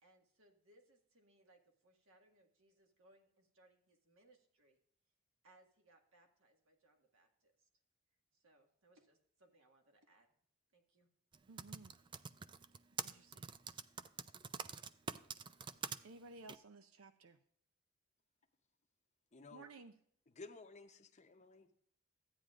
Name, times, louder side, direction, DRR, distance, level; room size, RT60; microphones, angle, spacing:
voice 1, 0.0-4.8 5.4-7.7 8.3-10.3 10.7-11.1, right 1 dB, 70° right, 3 dB, 1.7 m, -70 dB
Typing, 11.3-16.0 16.5-16.6, right 6 dB, 25° right, 0.3 m, -45 dB
voice 2, 11.5-11.9 13.0-13.5 16.0-17.4 19.5-20.0, right 3 dB, 85° right, 9 dB, 0.6 m, -56 dB
voice 3, 19.3-19.7 20.4-21.7, left 3 dB, 35° left, 7 dB, 0.8 m, -55 dB
13.5 x 9.1 x 2.5 m, 0.65 s
head